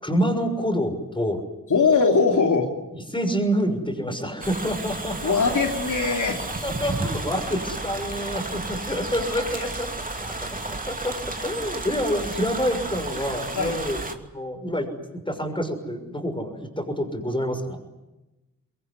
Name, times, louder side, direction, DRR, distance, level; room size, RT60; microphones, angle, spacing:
voice 1, 0.0-1.4 2.9-5.7 6.2-9.9 10.6-11.2 11.4-17.8, equal, 15° left, 6 dB, 6.1 m, -27 dB
voice 2, 1.7-2.7 5.2-6.4 9.3-9.7 13.5-13.7, left 4 dB, 65° left, 3 dB, 3.1 m, -21 dB
sound 1, 4.4-14.1, right 2 dB, 25° right, 2.9 m, -32 dB
24.5 x 22.5 x 9.9 m, 1.0 s
wide cardioid pair, 75°, 33 cm